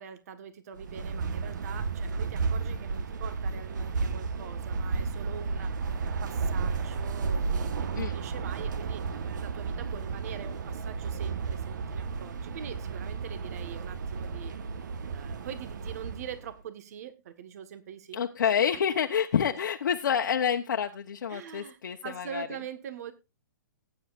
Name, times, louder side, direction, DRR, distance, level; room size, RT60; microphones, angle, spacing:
voice 1, 0.0-5.8 6.2-9.1 9.4-14.5 15.1-18.5 21.3-23.1, right 8 dB, 50° right, 11 dB, 1.4 m, -43 dB
sound 1, 0.8-16.5, right 4 dB, 70° right, 1.2 m, -33 dB
voice 2, 18.1-22.5, left 8 dB, 75° left, 2 dB, 1.0 m, -28 dB
17.5 x 9.4 x 2.5 m, 0.25 s
hypercardioid pair, 155°, 10 cm